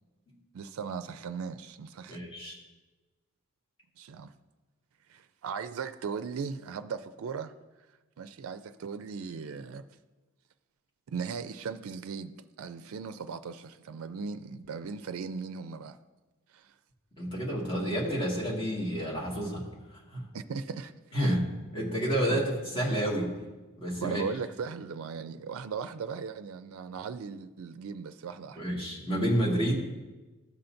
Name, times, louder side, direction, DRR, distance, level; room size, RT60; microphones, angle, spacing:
voice 1, 0.5-2.2 4.0-4.3 5.1-7.5 8.2-9.8 11.1-16.0 16.5-16.7 20.3-20.9 21.2-21.5 22.3-22.5 23.9-28.6, right 5 dB, 75° right, 0.4 m, -38 dB
voice 2, 2.1-2.6 17.2-20.3 21.1-21.5 21.7-22.4 22.7-23.3 23.8-24.2 28.6-29.9, equal, 25° left, 1.9 m, -29 dB
14.5 x 5.6 x 2.6 m
head